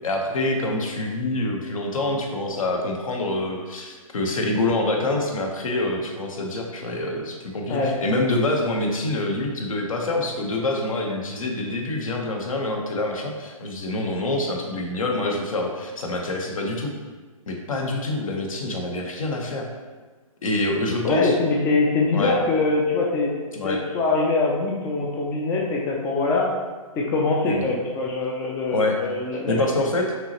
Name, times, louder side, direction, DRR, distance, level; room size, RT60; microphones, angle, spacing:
voice 1, 0.0-16.9 17.5-19.7 20.4-21.3 22.1-22.3 23.5-23.8 27.4-27.6 28.7-29.0 29.5-30.1, left 2 dB, 65° left, 1 dB, 1.0 m, -26 dB
voice 2, 7.7-8.0 21.0-23.3 23.6-26.5 27.0-29.6, left 3 dB, 15° left, -1 dB, 0.4 m, -23 dB
5.7 x 3.0 x 2.9 m, 1.3 s
figure-of-eight pair, 130°, 18 cm